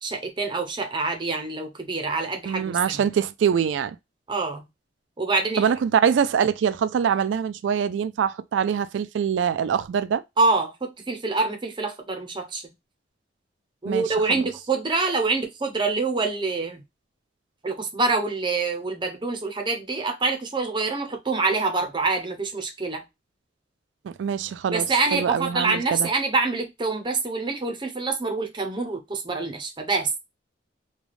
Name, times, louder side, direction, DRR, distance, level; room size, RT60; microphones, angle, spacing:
voice 1, 0.0-2.8 4.3-4.7 5.2-5.7 10.4-12.6 13.8-16.8 17.6-23.0 24.7-30.2, right 3 dB, 25° right, 0.7 m, -26 dB
voice 2, 2.5-4.0 5.6-10.2 13.9-14.4 24.0-26.1, right 7 dB, 80° right, 0.3 m, -24 dB
3.2 x 2.3 x 2.4 m
head